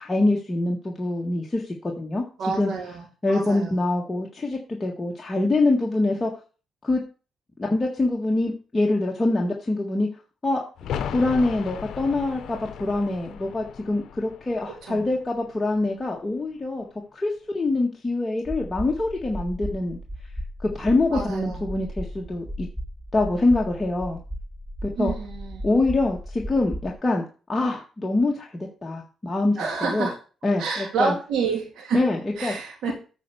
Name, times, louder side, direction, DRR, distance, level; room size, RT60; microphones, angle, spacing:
voice 1, 0.0-2.2 2.6-2.7 3.2-6.3 6.8-7.0 7.6-10.1 10.4-10.6 11.1-16.8 17.1-20.0 20.6-22.7 23.1-24.2 24.8-25.1 25.6-27.2 27.5-30.1 30.4-31.1 31.9-32.5, left 2 dB, 20° left, -1 dB, 1.7 m, -24 dB
voice 2, 2.4-3.8 14.6-15.1 21.1-21.6 25.0-25.6 29.6-30.2 30.6-32.0 32.4-32.9, right 5 dB, 75° right, 0 dB, 2.8 m, -29 dB
sound 1, 10.8-16.3 16.6-16.7, left 8 dB, 70° left, 0.8 m, -36 dB
sound 2, 18.5-26.9, equal, 5° right, 3.5 m, -35 dB
9.2 x 4.6 x 7.0 m, 0.36 s
cardioid pair, 90°, 0 cm